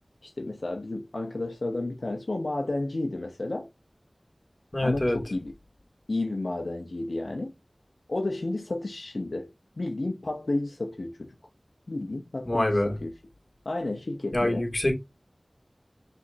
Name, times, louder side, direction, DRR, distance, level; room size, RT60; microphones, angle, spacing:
voice 1, 0.2-3.7 4.8-5.5 6.1-7.5 8.1-9.5 9.8-11.3 11.9-13.1 13.6-14.7, left 2 dB, 80° left, 0.8 m, -31 dB
voice 2, 4.7-5.2 12.4-13.0 14.3-14.9, left 1 dB, 40° left, 2.5 m, -25 dB
5.8 x 3.5 x 2.6 m
wide cardioid pair, 50°, 0 cm